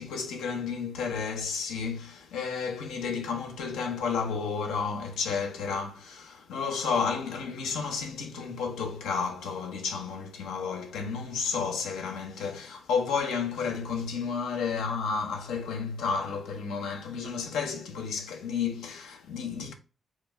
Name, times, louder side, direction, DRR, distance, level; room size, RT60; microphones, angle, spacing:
voice 1, 0.0-19.7, left 5 dB, 90° left, 0.8 m, -32 dB
4.9 x 2.2 x 3.5 m
supercardioid pair, 55°, 0 cm